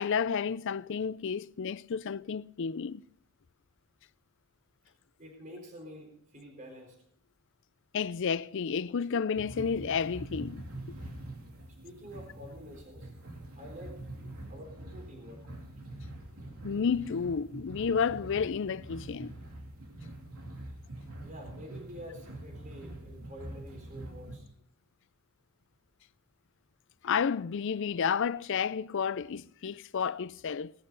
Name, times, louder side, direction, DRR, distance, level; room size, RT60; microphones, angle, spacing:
voice 1, 0.0-3.0 7.9-10.7 16.6-19.3 27.0-30.7, left 6 dB, 55° left, 0.4 m, -31 dB
voice 2, 5.2-7.0 11.8-13.1 13.5-14.0 14.5-15.4 21.2-24.5, equal, 35° right, 3.9 m, -48 dB
sound 1, 9.3-24.3, right 1 dB, 75° right, 3.0 m, -45 dB
18.5 x 13.0 x 4.0 m
head